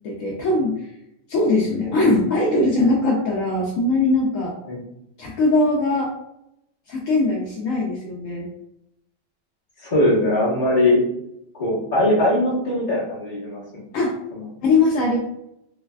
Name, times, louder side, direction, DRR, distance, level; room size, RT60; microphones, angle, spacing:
voice 1, 0.0-0.9 1.3-4.5 5.2-6.1 6.9-8.5 13.9-14.1 14.6-15.2, left 2 dB, 75° left, -2 dB, 0.7 m, -20 dB
voice 2, 9.8-11.0 11.6-13.8 14.3-14.4, left 1 dB, 25° left, -7 dB, 1.2 m, -20 dB
3.3 x 3.1 x 2.2 m, 0.82 s
omnidirectional pair, 1.9 m